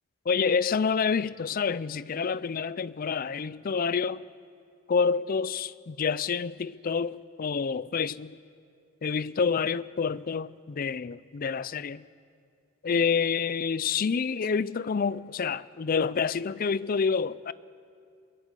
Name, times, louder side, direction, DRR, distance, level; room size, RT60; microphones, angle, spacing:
voice 1, 0.3-4.2 4.9-8.4 9.0-12.0 12.8-17.5, left 5 dB, 40° left, 0.4 m, -28 dB
22.5 x 22.0 x 5.4 m
head